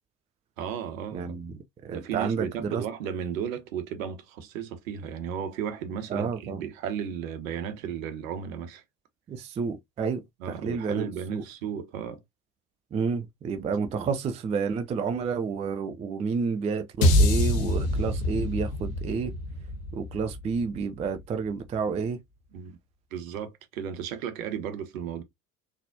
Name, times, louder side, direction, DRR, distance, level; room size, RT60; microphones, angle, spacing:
voice 1, 0.6-1.4 1.9-8.8 10.4-12.2 22.5-22.8 23.1-25.2, right 8 dB, 65° right, 1.1 m, -34 dB
voice 2, 1.1-2.8 6.1-6.6 9.3-11.4 12.9-19.3 19.9-22.2, right 5 dB, 15° right, 0.4 m, -30 dB
sound 1, 17.0-21.4, left 1 dB, 60° left, 1.0 m, -25 dB
4.0 x 3.4 x 2.6 m
figure-of-eight pair, 65°, 44 cm